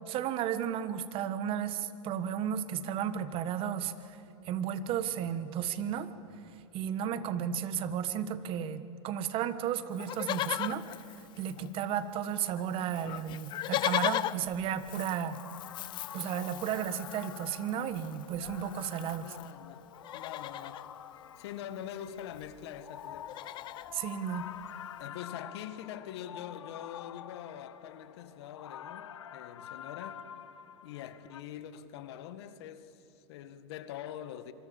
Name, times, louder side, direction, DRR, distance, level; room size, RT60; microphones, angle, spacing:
voice 1, 0.1-6.1 6.4-10.9 11.2-15.4 16.1-19.4 23.9-24.5, right 9 dB, 35° right, 1.5 m, -34 dB
Livestock farm animals working animals, 10.0-12.0 12.2-12.3 12.6-19.5 19.9-20.9 22.1-22.2 22.3-22.6 23.0-23.9 24.5-24.6, left 13 dB, 30° left, 0.7 m, -38 dB
sound 1, 15.2-31.4, left 9 dB, 90° left, 1.3 m, -47 dB
voice 2, 19.2-20.8 21.4-23.4 25.0-30.2 30.8-34.5, left 10 dB, 65° left, 1.8 m, -44 dB
26.5 x 24.0 x 7.2 m
hypercardioid pair, 130°, 15 cm